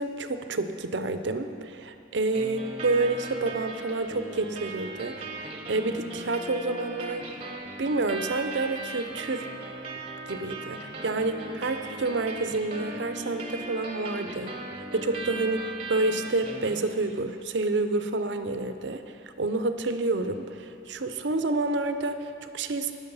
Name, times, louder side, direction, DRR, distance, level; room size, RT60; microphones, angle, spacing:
voice 1, 0.0-9.5 10.3-22.9, right 2 dB, 65° right, 9 dB, 0.6 m, -29 dB
sound 1, 2.3-17.3, right 2 dB, 30° right, 0.9 m, -38 dB
17.0 x 6.3 x 5.5 m, 2.7 s
head